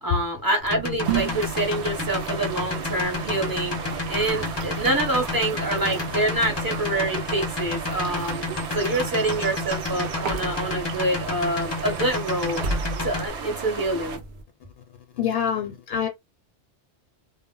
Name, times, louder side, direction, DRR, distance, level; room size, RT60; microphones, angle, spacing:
voice 1, 0.0-8.4 8.7-12.6 13.0-14.2, right 1 dB, 20° right, 0.7 m, -26 dB
sound 1, 0.6-14.4, right 4 dB, 55° right, 0.7 m, -36 dB
sound 2, 0.7-13.3, left 3 dB, 35° left, 0.5 m, -30 dB
sound 3, 1.0-14.2, right 5 dB, 85° right, 1.0 m, -35 dB
voice 2, 3.9-4.3 4.6-4.8 6.1-6.2 15.1-16.1, left 8 dB, 65° left, 0.7 m, -28 dB
2.1 x 2.0 x 3.6 m
omnidirectional pair, 1.1 m